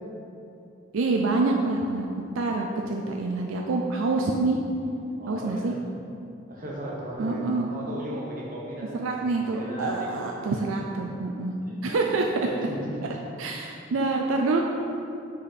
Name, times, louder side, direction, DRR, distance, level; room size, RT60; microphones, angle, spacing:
voice 1, 0.9-2.1 2.3-4.6 5.3-5.7 7.2-7.7 8.9-11.6 11.8-12.3 13.4-14.6, right 3 dB, 80° right, 1 dB, 0.4 m, -26 dB
voice 2, 5.2-5.9 6.5-10.1 11.6-13.2, right 1 dB, 40° right, -4 dB, 1.1 m, -37 dB
5.3 x 5.1 x 4.1 m, 2.7 s
head